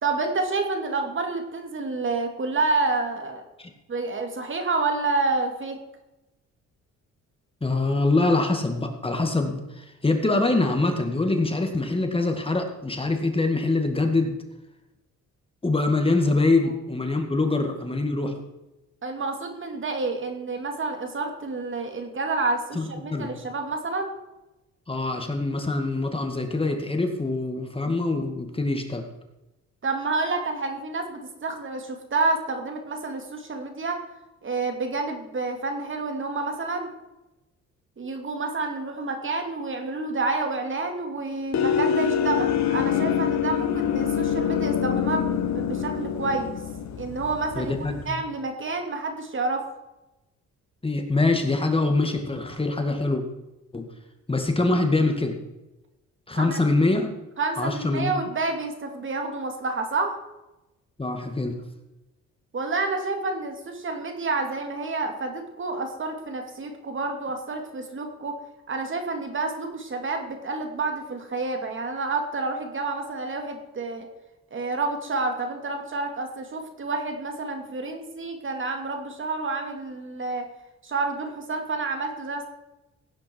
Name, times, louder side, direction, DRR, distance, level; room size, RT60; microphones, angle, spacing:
voice 1, 0.0-3.4 3.9-5.8 19.0-24.1 29.8-34.0 34.4-36.9 38.0-46.5 47.0-49.7 56.4-56.6 57.4-60.2 62.5-68.4 68.7-74.1 74.5-80.5 80.8-82.5, right 3 dB, 40° right, 5 dB, 2.6 m, -29 dB
voice 2, 7.6-14.4 15.6-18.3 22.8-23.3 24.9-29.0 47.6-48.2 50.8-53.2 53.7-53.9 54.3-55.4 56.3-57.1 57.6-58.1 61.0-61.5, left 2 dB, 20° left, 4 dB, 2.1 m, -24 dB
sound 1, 41.5-48.1, left 8 dB, 65° left, 1.7 m, -25 dB
17.0 x 9.8 x 4.7 m, 0.99 s
cardioid pair, 90°, 30 cm